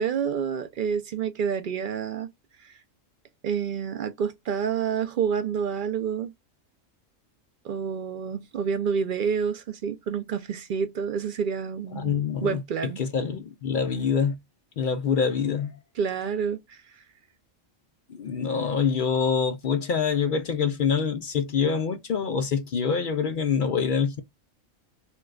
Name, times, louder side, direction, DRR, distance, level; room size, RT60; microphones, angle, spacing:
voice 1, 0.0-2.3 2.6-2.8 3.4-6.3 7.6-13.0 16.0-16.8, right 7 dB, 65° right, 0.5 m, -28 dB
voice 2, 11.9-12.6 13.0-14.4 14.8-15.8 18.1-24.2, left 6 dB, 65° left, 0.5 m, -25 dB
4.4 x 2.2 x 2.3 m
omnidirectional pair, 1.3 m